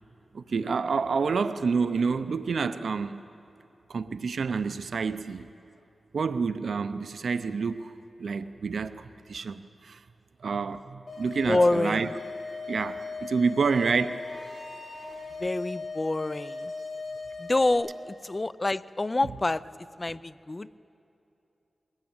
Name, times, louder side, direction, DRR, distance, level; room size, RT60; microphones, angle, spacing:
voice 1, 0.3-3.2 3.9-5.5 6.1-7.9 8.2-10.0 10.4-12.1 12.7-14.2, right 5 dB, 75° right, 12 dB, 0.6 m, -28 dB
sound 1, 11.1-17.7, left 3 dB, 55° left, 6.0 m, -38 dB
voice 2, 11.5-12.1 15.4-16.7 17.4-19.6 20.0-20.7, left 2 dB, 25° left, 16 dB, 0.4 m, -27 dB
22.0 x 18.0 x 8.8 m, 2.8 s
wide cardioid pair, 105°, 0 cm